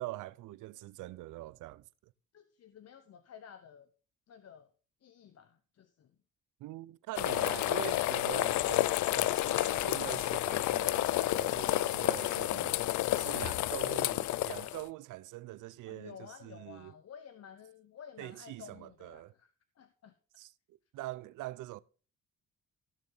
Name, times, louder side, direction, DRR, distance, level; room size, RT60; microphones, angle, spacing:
voice 1, 0.0-2.1 6.6-12.7 13.1-16.9 18.2-19.3 20.4-21.8, right 17 dB, 85° right, 0.6 m, -44 dB
voice 2, 2.3-3.9 4.3-4.7 5.0-6.1 12.0-12.7 15.9-19.5 19.8-20.1, left 7 dB, 55° left, 1.0 m, -52 dB
sound 1, 7.1-14.8, left 15 dB, 70° left, 0.5 m, -30 dB
15.0 x 6.8 x 4.0 m
cardioid pair, 90°, 30 cm